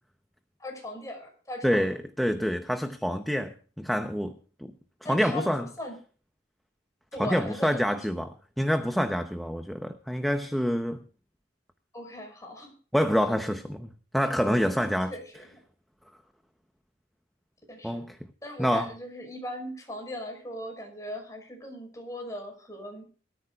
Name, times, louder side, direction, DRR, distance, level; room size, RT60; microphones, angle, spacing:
voice 1, 0.6-1.9 5.0-6.0 7.1-7.9 11.9-12.7 15.1-15.5 17.7-18.0 18.4-23.1, left 1 dB, 20° left, 5.8 m, -39 dB
voice 2, 1.6-4.4 5.1-5.6 7.2-11.0 12.9-15.1 17.8-18.2 18.6-18.9, equal, ahead, 0.8 m, -27 dB
23.5 x 13.5 x 2.4 m
head